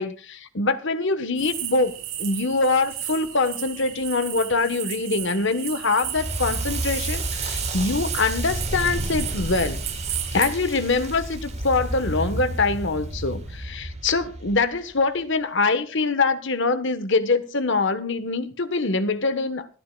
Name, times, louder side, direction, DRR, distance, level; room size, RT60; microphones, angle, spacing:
voice 1, 0.0-1.9 2.2-9.8 10.3-19.7, left 3 dB, 55° left, 1.3 m, -24 dB
sound 1, 1.4-10.5, right 11 dB, 65° right, 6.2 m, -34 dB
Crackle, 6.0-15.0, right 1 dB, 30° right, 4.4 m, -31 dB
26.0 x 10.5 x 2.3 m
head